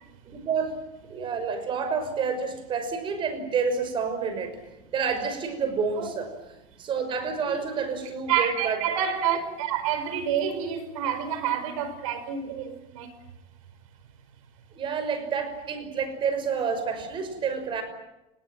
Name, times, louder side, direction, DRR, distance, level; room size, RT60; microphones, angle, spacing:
voice 1, 0.3-0.7 1.1-4.6 4.9-6.3 6.8-8.8 14.7-17.8, right 5 dB, 30° right, 9 dB, 5.8 m, -29 dB
voice 2, 7.5-7.9 8.3-13.1, right 8 dB, 85° right, 11 dB, 5.0 m, -28 dB
30.0 x 19.5 x 9.3 m, 0.96 s
supercardioid pair, 155°, 17 cm